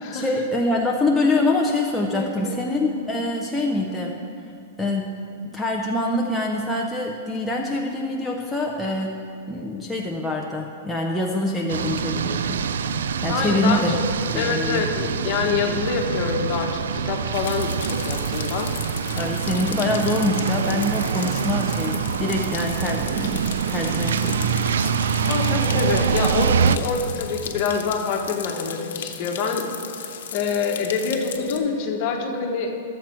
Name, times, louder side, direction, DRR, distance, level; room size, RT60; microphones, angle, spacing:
voice 1, 0.1-4.2 4.8-5.1 5.5-9.1 9.5-12.6 13.2-14.0 14.3-14.8 19.2-24.5, left 2 dB, 5° left, -2 dB, 0.6 m, -25 dB
voice 2, 2.1-2.6 13.3-14.0 14.3-18.7 25.3-29.7 30.0-32.7, left 5 dB, 40° left, 2 dB, 1.3 m, -26 dB
sound 1, 11.7-26.8, right 7 dB, 90° right, 0.4 m, -25 dB
sound 2, 17.3-31.6, left 8 dB, 75° left, 1.0 m, -36 dB
13.0 x 7.5 x 4.5 m, 2.4 s
supercardioid pair, 160°, 0 cm